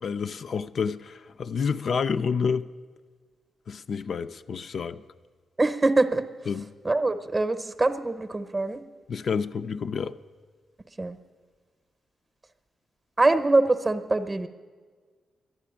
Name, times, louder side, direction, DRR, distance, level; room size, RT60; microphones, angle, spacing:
voice 1, 0.0-2.6 3.7-5.0 6.5-6.7 9.1-10.1, left 6 dB, 55° left, 0.4 m, -29 dB
voice 2, 5.6-6.2 6.8-8.8 11.0-11.2 13.2-14.5, right 2 dB, 25° right, 0.7 m, -23 dB
11.0 x 9.3 x 9.9 m
cardioid pair, 115°, 0 cm